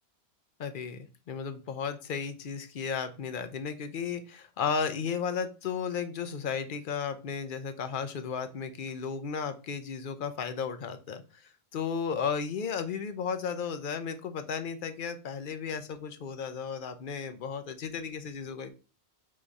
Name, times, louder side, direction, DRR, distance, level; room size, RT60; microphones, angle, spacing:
voice 1, 0.6-18.7, left 6 dB, 55° left, 9 dB, 0.7 m, -34 dB
3.7 x 2.6 x 4.6 m, 0.33 s
omnidirectional pair, 1.1 m